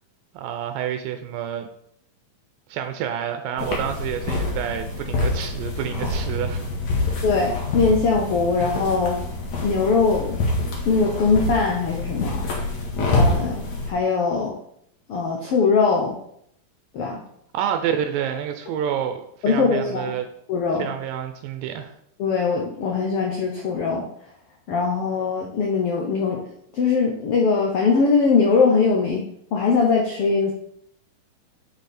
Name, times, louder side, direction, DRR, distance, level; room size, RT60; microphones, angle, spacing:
voice 1, 0.3-1.7 2.7-6.6 7.0-7.1 17.5-19.2 19.5-20.3 20.8-21.9, right 9 dB, 85° right, 7 dB, 2.3 m, -28 dB
sound 1, 3.6-13.9, left 2 dB, 60° left, 2.9 m, -26 dB
voice 2, 7.2-9.2 9.6-10.4 10.8-12.5 13.1-14.5 15.1-16.2 16.9-17.2 19.4-20.1 20.5-20.9 22.2-24.0 24.7-26.5 26.7-29.2 29.5-30.5, left 4 dB, 90° left, 1 dB, 1.2 m, -21 dB
8.1 x 6.3 x 4.3 m, 0.71 s
omnidirectional pair, 4.0 m